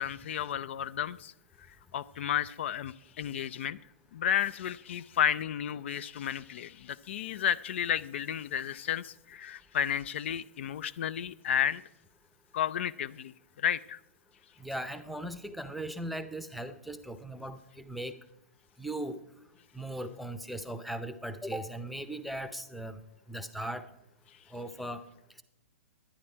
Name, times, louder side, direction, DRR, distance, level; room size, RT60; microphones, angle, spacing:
voice 1, 0.0-1.3 1.9-3.8 4.1-11.8 12.5-13.3 13.6-14.0, left 9 dB, 60° left, 16 dB, 0.4 m, -32 dB
voice 2, 14.6-18.2 18.8-19.2 19.7-23.0 23.3-23.8 24.5-25.0, right 1 dB, ahead, 9 dB, 0.7 m, -38 dB
11.0 x 10.0 x 4.4 m, 0.84 s
hypercardioid pair, 120°, 7 cm